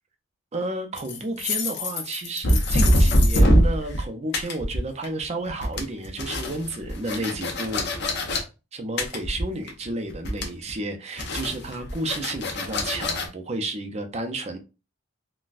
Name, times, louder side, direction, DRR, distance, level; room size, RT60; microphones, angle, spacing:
voice 1, 0.5-7.9 8.7-14.6, right 2 dB, 30° right, 0.5 m, -31 dB
sound 1, 1.0-4.0 4.3-5.2 5.5-8.4 9.0-9.8 10.1-10.7 11.2-13.3, equal, 55° left, 0.8 m, -23 dB
4.0 x 2.2 x 2.5 m
head